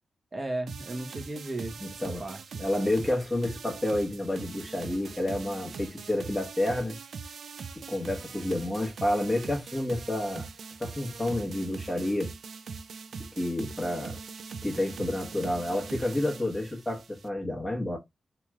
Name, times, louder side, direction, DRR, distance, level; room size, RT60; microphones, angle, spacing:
voice 1, 0.3-2.6, right 2 dB, 40° right, 0.8 m, -36 dB
sound 1, 0.7-17.3, right 5 dB, 80° right, 0.3 m, -42 dB
voice 2, 1.8-2.2 2.6-7.0 7.9-10.5 10.8-12.3 13.4-14.2 14.6-18.0, left 1 dB, 20° left, 1.1 m, -29 dB
3.1 x 2.8 x 2.3 m
cardioid pair, 70°, 0 cm